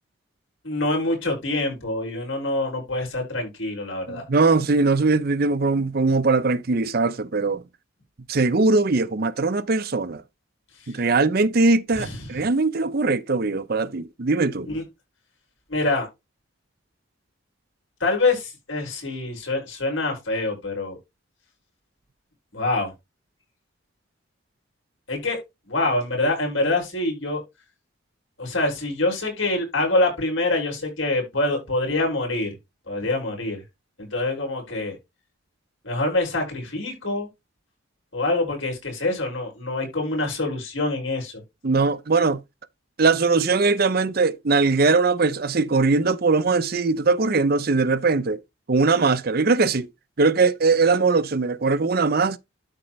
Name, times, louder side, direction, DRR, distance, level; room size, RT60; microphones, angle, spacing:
voice 1, 0.6-4.2 12.0-12.2 14.7-14.8 15.7-16.1 18.0-21.0 22.5-22.9 25.1-25.4 25.7-27.4 28.4-32.5 32.9-33.6 34.0-34.9 35.8-37.3 38.1-41.3, left 2 dB, 75° left, 5.7 m, -25 dB
voice 2, 4.1-7.6 8.3-10.2 10.9-14.7 41.6-42.4 43.0-48.4 48.7-49.9 50.2-52.4, right 3 dB, 45° right, 0.6 m, -21 dB
12.5 x 4.4 x 3.1 m
head